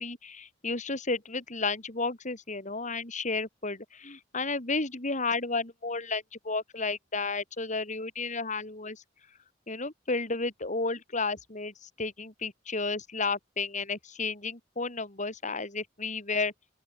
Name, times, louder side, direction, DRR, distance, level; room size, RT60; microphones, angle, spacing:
voice 1, 0.0-9.0 9.7-16.5, left 3 dB, 40° left, 4.4 m, -32 dB
open air
head